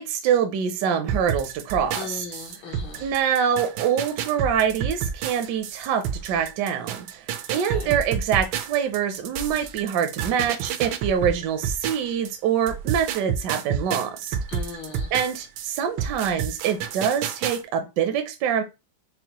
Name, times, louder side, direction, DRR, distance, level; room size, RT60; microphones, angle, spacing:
voice 1, 0.0-2.2 3.0-7.3 7.5-14.4 15.1-18.6, right 8 dB, 75° right, 8 dB, 1.0 m, -25 dB
sound 1, 1.1-12.3 12.7-17.6, right 8 dB, 90° right, 1.4 m, -30 dB
voice 2, 2.0-3.1 7.5-7.9 14.5-15.1, left 6 dB, 75° left, 2 dB, 1.7 m, -38 dB
5.3 x 2.1 x 2.8 m, 0.26 s
omnidirectional pair, 2.1 m